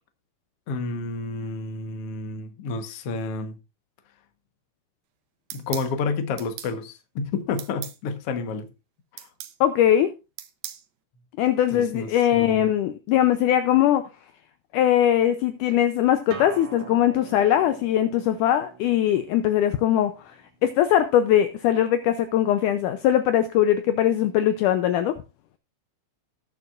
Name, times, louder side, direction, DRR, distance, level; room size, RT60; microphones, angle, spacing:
voice 1, 0.7-3.6 5.5-8.7 9.1-9.3 11.7-12.7, left 4 dB, 55° left, 1.7 m, -30 dB
sound 1, 5.5-5.9 6.4-6.7 7.6-8.0 9.2-9.6 10.4-10.8, right 13 dB, 75° right, 2.5 m, -37 dB
voice 2, 9.6-10.1 11.4-14.1 14.7-20.1 20.6-25.2, left 11 dB, 80° left, 1.9 m, -21 dB
Acoustic guitar, 16.3-21.5, right 5 dB, 55° right, 2.1 m, -44 dB
19.0 x 6.9 x 2.5 m
omnidirectional pair, 4.1 m